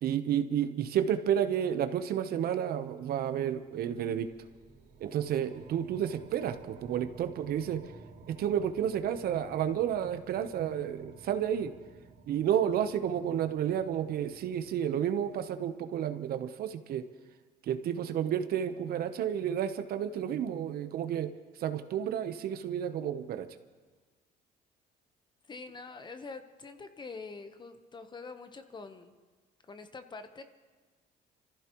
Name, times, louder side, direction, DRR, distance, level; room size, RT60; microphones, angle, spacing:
voice 1, 0.0-4.3 5.0-7.8 8.3-11.7 12.3-17.0 17.6-21.3 21.6-23.5, right 9 dB, 65° right, 9 dB, 0.9 m, -31 dB
sound 1, 3.3-15.8, right 3 dB, 85° right, 3.3 m, -55 dB
voice 2, 25.4-29.1 29.7-30.4, left 4 dB, 25° left, 9 dB, 1.0 m, -45 dB
26.0 x 15.0 x 3.1 m, 1.4 s
cardioid pair, 110°, 17 cm